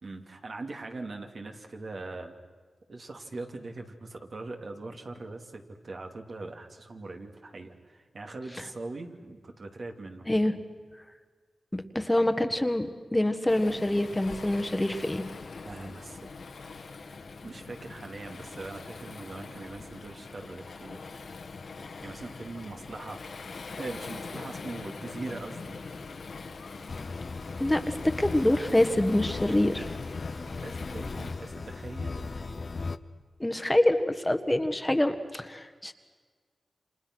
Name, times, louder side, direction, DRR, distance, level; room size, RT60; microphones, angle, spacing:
voice 1, 0.0-2.4 2.9-10.3 15.6-16.3 17.4-21.1 22.0-23.2 23.8-25.8 28.9-29.0 30.4-32.7 35.2-35.3, right 2 dB, 60° right, 3 dB, 2.8 m, -41 dB
voice 2, 11.7-15.2 27.6-29.9 33.4-35.9, left 1 dB, 15° left, 8 dB, 1.5 m, -26 dB
Waves surf, 13.5-31.3, left 4 dB, 75° left, 2.0 m, -42 dB
sound 1, 26.9-33.0, left 3 dB, 55° left, 0.9 m, -37 dB
29.5 x 26.5 x 6.3 m, 1.5 s
cardioid pair, 65°, 0 cm